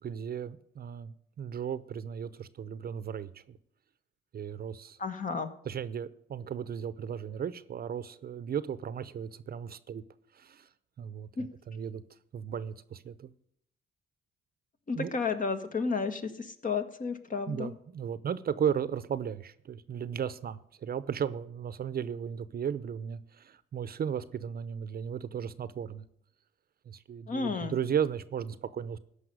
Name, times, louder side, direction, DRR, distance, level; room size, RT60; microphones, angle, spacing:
voice 1, 0.0-3.6 4.3-5.0 5.6-10.0 10.3-10.7 11.0-11.3 11.7-12.0 12.3-13.3 14.9-15.1 17.5-26.1 26.9-29.0, right 8 dB, 50° right, 0.8 m, -35 dB
voice 2, 5.0-5.5 11.4-11.5 14.9-17.7 27.3-27.8, left 4 dB, 40° left, 1.6 m, -32 dB
14.0 x 5.6 x 9.5 m
cardioid pair, 90°, 20 cm